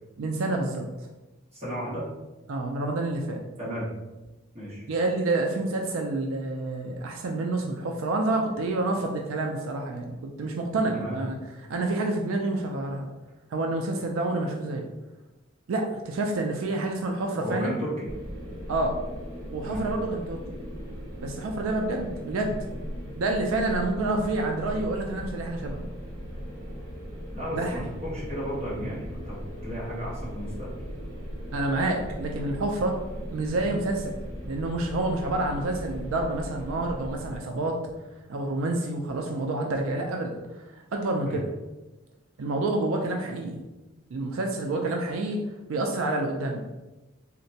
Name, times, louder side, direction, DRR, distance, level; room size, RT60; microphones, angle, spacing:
voice 1, 0.2-0.9 2.5-3.4 4.9-11.4 11.7-13.1 13.5-14.9 15.7-17.8 18.7-19.0 19.5-20.6 21.2-22.7 23.2-25.9 27.5-27.9 31.5-33.0 33.3-34.2 34.5-37.8 38.3-41.5 42.4-43.6 44.1-45.4 45.7-46.6, right 2 dB, 90° right, 1 dB, 0.4 m, -28 dB
voice 2, 1.5-2.0 3.6-3.9 4.5-4.9 10.9-11.2 17.4-18.1 19.6-19.9 27.3-30.7 41.3-41.4, equal, 30° right, -8 dB, 1.3 m, -34 dB
sound 1, 18.0-37.4, equal, 50° right, 1.1 m, -38 dB
3.9 x 2.1 x 2.7 m, 1.1 s
head